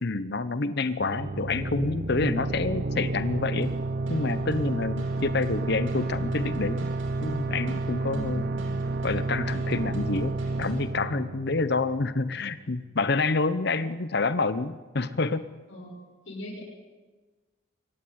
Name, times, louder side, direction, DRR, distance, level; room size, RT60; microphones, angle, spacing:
voice 1, 0.0-3.7 4.1-6.9 7.2-8.5 9.0-15.5, left 3 dB, 55° left, 13 dB, 0.8 m, -28 dB
sound 1, 1.0-12.4, right 2 dB, 50° right, 0.7 m, -30 dB
sound 2, 3.6-10.8, equal, 75° right, 5.0 m, -46 dB
voice 2, 8.1-8.7 15.7-15.9 16.2-16.6, left 1 dB, 70° left, -3 dB, 6.2 m, -39 dB
23.0 x 17.5 x 9.4 m, 1.3 s
head